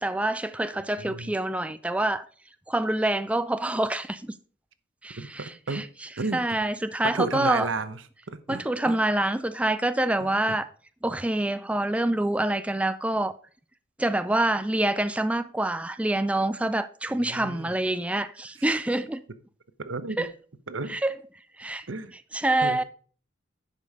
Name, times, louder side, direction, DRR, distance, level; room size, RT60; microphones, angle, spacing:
voice 1, 0.0-2.3 2.7-4.3 5.0-5.9 6.3-7.7 8.5-10.7 11.0-13.3 14.0-19.2 20.2-20.3 20.9-21.1 21.6-21.9 22.3-22.8, right 1 dB, 5° right, 0.3 m, -26 dB
voice 2, 1.0-1.4 5.2-5.8 6.2-6.4 7.0-8.0 8.3-9.0 10.5-10.6 17.1-17.7 18.6-18.7 19.8-20.3 20.7-21.0 21.9-22.1 22.6-22.8, right 3 dB, 85° right, 0.9 m, -32 dB
10.5 x 5.3 x 4.9 m
head